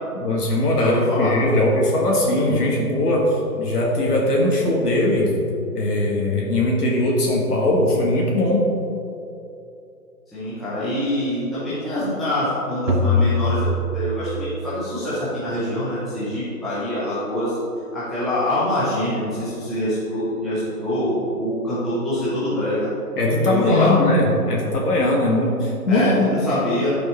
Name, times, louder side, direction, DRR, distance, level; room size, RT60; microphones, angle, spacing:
voice 1, 0.1-5.3 5.7-8.6 23.2-26.3, left 1 dB, 75° left, -3 dB, 1.9 m, -20 dB
voice 2, 0.8-1.4 10.3-13.7 13.9-17.6 17.9-22.9 23.4-23.9 25.9-26.9, left 1 dB, ahead, -14 dB, 0.6 m, -24 dB
sound 1, 12.9-14.8, left 2 dB, 90° right, 1.2 m, -22 dB
11.5 x 7.1 x 3.1 m, 2.7 s
figure-of-eight pair, 135°, 47 cm